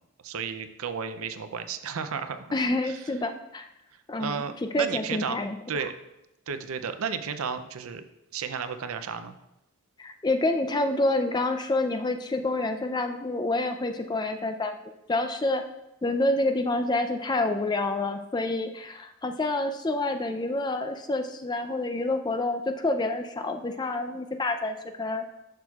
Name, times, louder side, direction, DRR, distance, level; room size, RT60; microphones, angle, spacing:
voice 1, 0.2-2.5 2.9-3.0 4.2-5.4 5.7-5.9 6.5-8.0 8.3-9.3, right 6 dB, 80° right, 10 dB, 0.5 m, -33 dB
voice 2, 2.5-3.7 4.1-4.4 4.7-5.6 5.8-5.9 10.0-14.8 15.1-15.6 16.0-25.2, left 2 dB, 20° left, 7 dB, 0.4 m, -28 dB
11.0 x 6.1 x 2.4 m, 0.89 s
head